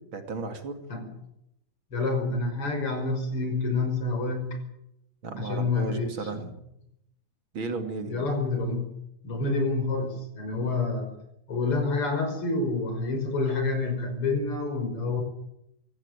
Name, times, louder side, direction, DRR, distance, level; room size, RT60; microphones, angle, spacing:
voice 1, 0.1-0.8 5.2-6.6 7.5-8.2, right 3 dB, 40° right, 7 dB, 3.0 m, -34 dB
voice 2, 1.9-4.6 5.4-6.4 8.1-8.9 9.2-11.1 11.5-15.2, left 3 dB, 45° left, 6 dB, 6.3 m, -28 dB
24.0 x 16.5 x 9.1 m, 0.80 s
omnidirectional pair, 3.6 m